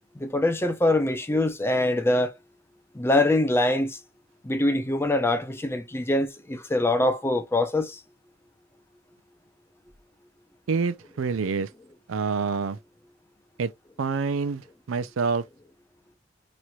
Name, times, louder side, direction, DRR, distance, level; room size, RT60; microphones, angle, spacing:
voice 1, 0.2-2.3 3.0-4.0 4.4-7.9, left 1 dB, 10° left, 0.5 m, -23 dB
voice 2, 10.7-11.7 12.1-12.8 13.6-13.7 14.0-15.4, right 5 dB, 80° right, 0.4 m, -27 dB
3.1 x 2.9 x 2.3 m
head